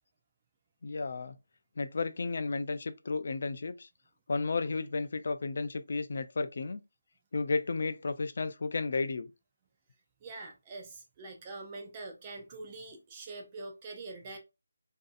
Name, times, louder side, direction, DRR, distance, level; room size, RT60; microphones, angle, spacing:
voice 1, 0.8-1.4 1.8-3.9 4.3-6.8 7.3-9.3, left 3 dB, 50° left, 0.3 m, -33 dB
voice 2, 10.2-14.4, right 3 dB, 20° right, 0.4 m, -44 dB
2.6 x 2.4 x 2.3 m
figure-of-eight pair, 170°, 0 cm